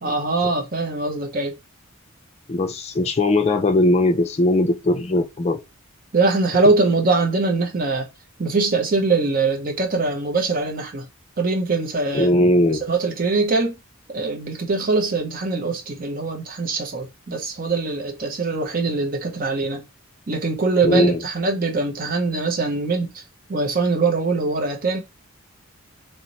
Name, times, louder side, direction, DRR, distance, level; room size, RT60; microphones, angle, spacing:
voice 1, 0.0-1.6 6.1-8.1 8.4-11.1 11.4-12.3 12.8-13.8 14.1-19.9 20.3-23.2 23.5-25.0, right 3 dB, 40° right, 0.6 m, -22 dB
voice 2, 2.5-5.6 12.1-12.8 20.8-21.2, left 1 dB, 30° left, 0.4 m, -19 dB
2.9 x 2.1 x 3.8 m
head